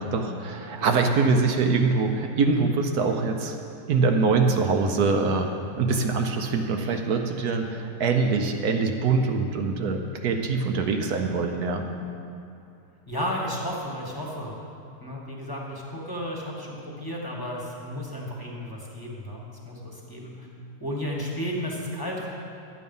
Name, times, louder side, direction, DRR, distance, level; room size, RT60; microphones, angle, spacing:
voice 1, 0.0-3.6 3.9-11.9, right 4 dB, 65° right, 4 dB, 1.2 m, -24 dB
voice 2, 13.1-14.6 15.0-20.5 20.8-22.3, equal, 15° left, -3 dB, 1.4 m, -33 dB
11.0 x 8.6 x 5.4 m, 2.6 s
omnidirectional pair, 1.9 m